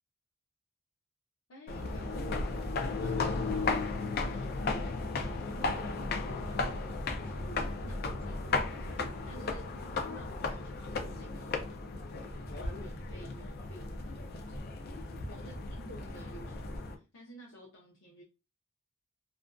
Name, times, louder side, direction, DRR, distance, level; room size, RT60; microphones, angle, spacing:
voice 1, 1.5-2.3 2.8-11.7 12.5-14.7 15.2-18.2, equal, 90° left, 0.6 m, -52 dB
sound 1, 1.7-16.9, left 3 dB, 50° left, 0.4 m, -35 dB
2.4 x 2.4 x 2.2 m
head